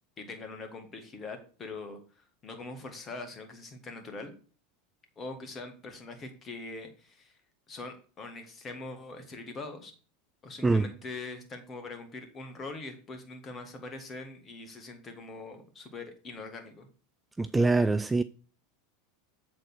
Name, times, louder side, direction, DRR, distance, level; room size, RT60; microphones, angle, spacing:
voice 1, 0.2-4.3 5.2-7.4 7.7-9.9 10.4-16.9, left 3 dB, 30° left, 2.1 m, -42 dB
voice 2, 17.4-18.2, right 3 dB, 10° right, 0.4 m, -24 dB
7.5 x 4.3 x 6.4 m
figure-of-eight pair, 85°, 0 cm